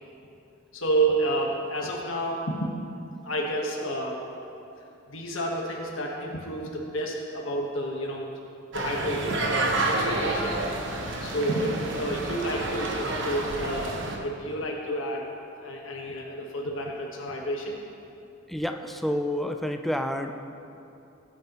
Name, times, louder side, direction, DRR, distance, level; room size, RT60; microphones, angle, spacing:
voice 1, 0.7-2.7 3.2-4.2 5.1-8.3 8.7-10.5 11.2-15.2 15.6-17.8, right 1 dB, 90° left, -1 dB, 1.4 m, -30 dB
sound 1, 8.7-14.2, right 2 dB, 65° right, 1.1 m, -29 dB
voice 2, 18.5-20.3, equal, ahead, 5 dB, 0.5 m, -29 dB
19.0 x 8.8 x 3.1 m, 2.7 s
head